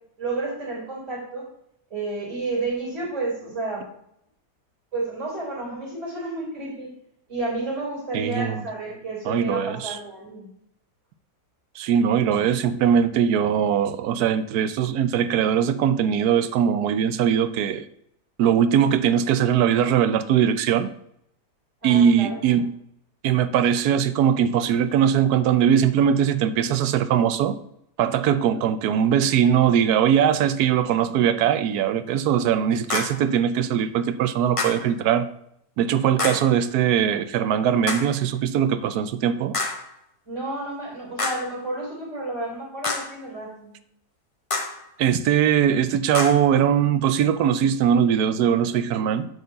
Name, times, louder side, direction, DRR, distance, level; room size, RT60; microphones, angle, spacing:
voice 1, 0.2-1.4 1.9-3.9 4.9-6.9 7.3-10.5 21.8-22.6 28.4-28.7 36.2-36.4 40.3-43.7, right 2 dB, 45° right, -3 dB, 3.6 m, -31 dB
voice 2, 8.1-8.6 9.2-10.0 11.8-17.8 18.4-20.9 21.8-22.7 23.2-27.6 28.0-35.3 35.8-39.6 45.0-49.3, right 8 dB, 70° right, 13 dB, 1.1 m, -21 dB
sound 1, 32.9-33.3 34.6-34.9 36.2-36.5 37.9-38.2 39.5-39.9 41.2-41.6 42.8-43.2 44.5-44.8 46.1-46.5, left 3 dB, 35° left, 0.5 m, -28 dB
7.8 x 4.6 x 6.4 m, 0.73 s
omnidirectional pair, 1.8 m